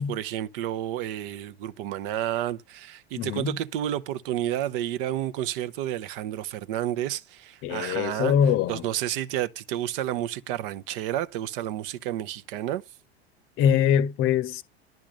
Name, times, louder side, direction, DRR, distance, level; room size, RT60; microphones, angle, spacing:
voice 1, 0.0-8.3 8.7-12.8, right 12 dB, 60° right, 0.8 m, -30 dB
voice 2, 3.2-3.5 7.6-8.8 13.6-14.6, left 9 dB, 40° left, 0.7 m, -23 dB
10.5 x 3.6 x 6.2 m
hypercardioid pair, 90°, 31 cm